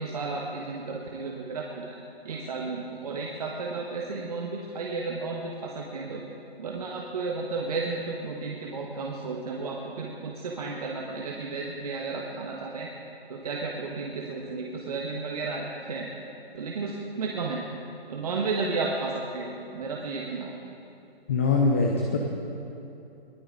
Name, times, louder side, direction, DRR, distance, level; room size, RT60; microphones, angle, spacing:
voice 1, 0.0-1.9 2.2-6.2 6.6-12.9 13.3-16.1 16.5-17.6 18.1-20.5, right 3 dB, 40° right, -1 dB, 1.5 m, -33 dB
voice 2, 21.3-22.2, left 3 dB, 15° left, 1 dB, 0.6 m, -23 dB
22.0 x 16.5 x 4.0 m, 2.8 s
figure-of-eight pair, 155°, 31 cm